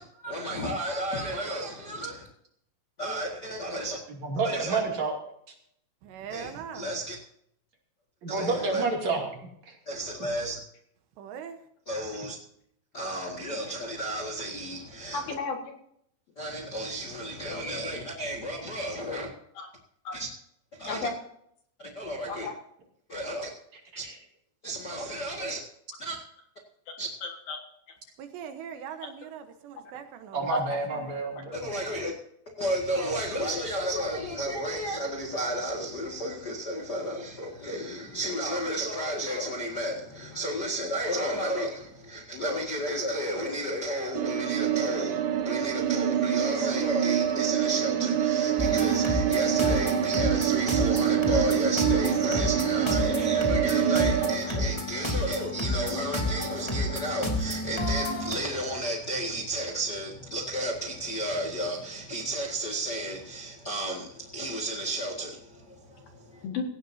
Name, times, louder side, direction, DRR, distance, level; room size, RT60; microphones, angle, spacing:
voice 1, 0.0-2.3 3.0-4.0 4.4-4.8 6.3-7.2 8.3-8.8 9.8-10.6 11.9-12.4 12.9-15.3 16.4-19.3 20.1-20.3 20.8-21.1 21.8-22.5 23.1-23.5 23.9-24.0 24.6-25.6 26.0-26.2 27.0-27.1 31.5-32.1 32.6-66.5, right 1 dB, 80° left, 0.9 m, -32 dB
voice 2, 4.2-5.1 8.2-9.2 9.7-9.8 24.0-24.1 30.3-31.6, right 3 dB, 40° right, 3.4 m, -29 dB
voice 3, 6.0-6.9 11.2-11.6 28.2-30.5 30.9-31.1, right 8 dB, 75° right, 3.1 m, -41 dB
voice 4, 15.1-15.7 19.1-19.2 19.6-19.7 20.0-20.2 20.9-21.2 22.3-22.5 27.2-27.6 30.5-30.8 66.4-66.6, left 4 dB, 60° left, 3.0 m, -33 dB
sound 1, 44.1-54.4, right 10 dB, 90° right, 4.0 m, -26 dB
sound 2, 48.6-58.3, left 1 dB, 10° left, 2.1 m, -30 dB
17.5 x 17.0 x 2.8 m
omnidirectional pair, 5.4 m